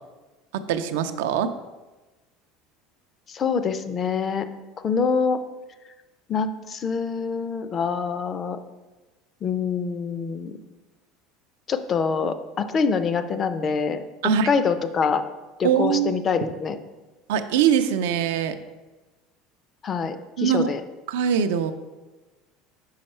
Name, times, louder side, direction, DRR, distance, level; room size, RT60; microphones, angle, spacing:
voice 1, 0.5-1.5 14.2-14.5 15.6-16.2 17.3-18.6 20.4-20.7 21.1-21.7, right 8 dB, 85° right, 9 dB, 0.4 m, -22 dB
voice 2, 3.3-4.5 4.8-5.4 6.3-8.6 9.4-10.6 11.7-15.2 15.6-16.8 19.8-20.8, left 5 dB, 35° left, 10 dB, 0.4 m, -25 dB
5.6 x 4.6 x 4.3 m, 1.2 s
supercardioid pair, 120°, 0 cm